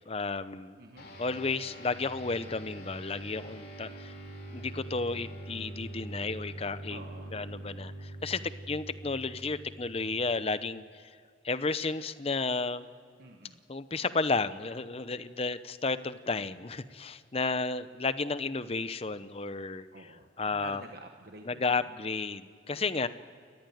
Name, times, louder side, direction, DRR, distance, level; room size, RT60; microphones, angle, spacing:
voice 1, 0.1-0.8 1.2-4.1 4.5-7.0 7.3-8.4 8.7-11.1 11.4-12.9 13.7-19.9 20.4-20.8 21.5-23.1, left 3 dB, 30° left, 13 dB, 0.8 m, -32 dB
voice 2, 0.8-1.1 6.9-7.4 13.2-13.6 19.9-21.7, right 2 dB, 55° right, 3 dB, 1.3 m, -48 dB
sound 1, 1.0-10.7, right 1 dB, 55° left, 3.9 m, -44 dB
29.5 x 14.0 x 9.2 m, 2.3 s
head